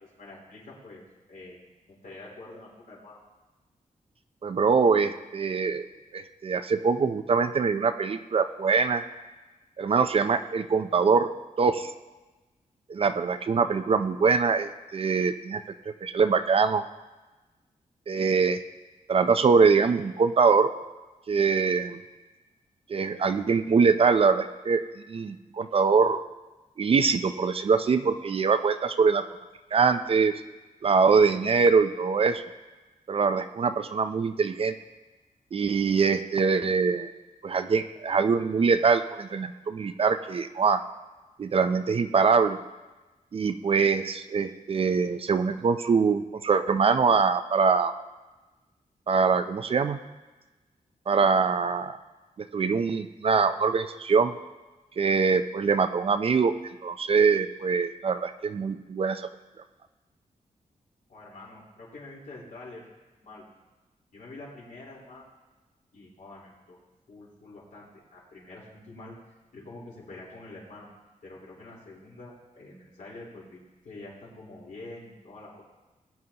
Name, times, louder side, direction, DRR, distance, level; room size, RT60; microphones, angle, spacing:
voice 1, 0.1-1.0 1.3-1.6 1.9-3.2 61.1-62.8 63.1-63.4 64.1-65.3 65.9-66.8 67.1-69.2 69.5-70.9 71.2-75.6, left 2 dB, 70° left, -5 dB, 3.9 m, -46 dB
voice 2, 4.4-5.9 6.1-9.0 9.8-11.3 11.6-11.9 12.9-15.6 16.0-16.8 18.1-18.6 19.1-20.7 21.3-22.0 22.9-24.8 25.1-26.2 26.8-29.2 29.7-30.3 30.8-32.4 33.1-34.7 35.5-37.1 37.4-40.8 41.4-42.6 43.3-47.9 49.1-50.0 51.1-52.0 52.5-54.3 55.0-56.5 56.8-59.2, right 5 dB, 45° right, 9 dB, 0.5 m, -23 dB
19.5 x 9.3 x 2.9 m, 1.2 s
wide cardioid pair, 170°, 14 cm